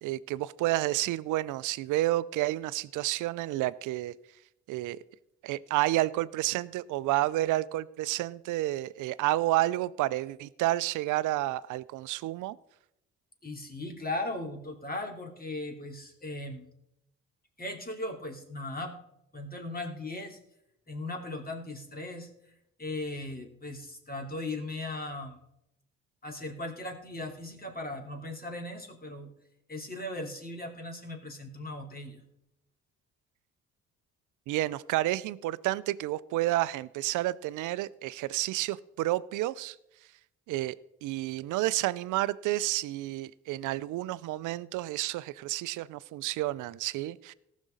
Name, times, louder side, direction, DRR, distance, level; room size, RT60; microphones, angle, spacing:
voice 1, 0.0-4.1 4.7-5.0 5.4-12.6 34.5-39.8 40.5-47.3, right 16 dB, 65° right, 19 dB, 0.6 m, -30 dB
voice 2, 13.4-16.7 17.6-19.0 19.3-20.4 20.9-22.3 22.8-25.4 26.2-29.3 29.7-32.2, left 2 dB, 25° left, 3 dB, 3.1 m, -38 dB
18.5 x 6.2 x 3.9 m, 0.83 s
hypercardioid pair, 50°, 33 cm